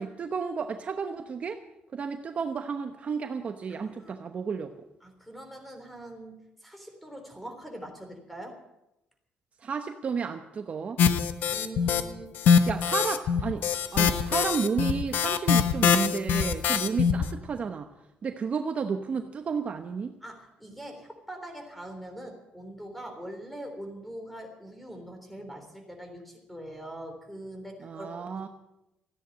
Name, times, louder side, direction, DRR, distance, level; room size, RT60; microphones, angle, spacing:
voice 1, 0.0-1.6 1.9-4.7 9.6-11.0 12.7-13.6 13.9-17.9 18.2-20.1 27.8-28.5, right 5 dB, 40° right, 7 dB, 1.0 m, -32 dB
voice 2, 3.7-4.2 5.0-8.6 11.5-12.3 20.2-28.5, right 1 dB, ahead, 4 dB, 3.6 m, -43 dB
sound 1, 11.0-12.0 12.4-17.3, left 7 dB, 70° left, 1.1 m, -23 dB
14.5 x 10.0 x 9.1 m, 0.91 s
cardioid pair, 120°, 3 cm